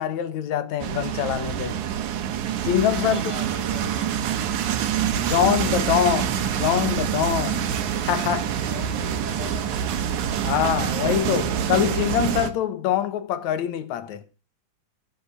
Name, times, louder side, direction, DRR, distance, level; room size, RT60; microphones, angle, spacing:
voice 1, 0.0-1.8 2.6-3.2 5.2-7.8 8.0-8.5 10.4-14.2, left 10 dB, 70° left, 2.2 m, -24 dB
sound 1, 0.8-12.5, right 9 dB, 75° right, 2.5 m, -26 dB
voice 2, 2.9-4.2 8.5-9.7, left 2 dB, 10° left, 1.4 m, -39 dB
15.5 x 5.8 x 6.8 m
omnidirectional pair, 3.6 m